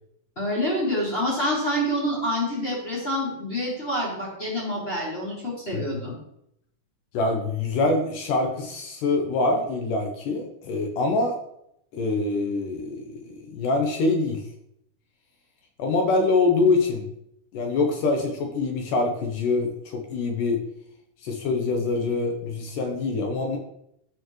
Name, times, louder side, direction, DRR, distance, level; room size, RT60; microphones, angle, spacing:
voice 1, 0.4-6.2, equal, 20° left, -6 dB, 2.5 m, -27 dB
voice 2, 7.1-11.4 11.9-14.4 15.8-17.1 17.5-20.6 21.2-23.6, left 3 dB, 75° left, 3 dB, 2.3 m, -25 dB
13.0 x 4.5 x 3.1 m, 0.75 s
omnidirectional pair, 4.2 m